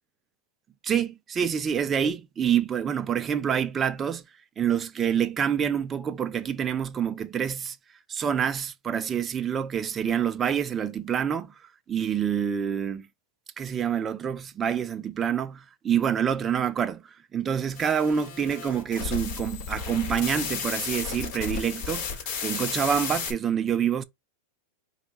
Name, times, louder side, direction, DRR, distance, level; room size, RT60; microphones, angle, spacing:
voice 1, 0.8-4.2 4.6-7.8 8.1-11.5 11.9-13.1 13.6-22.1 22.4-24.0, right 8 dB, 20° right, 0.5 m, -27 dB
sound 1, 17.7-23.3, left 6 dB, 45° left, 2.9 m, -33 dB
4.5 x 2.4 x 4.1 m
supercardioid pair, 145°, 0 cm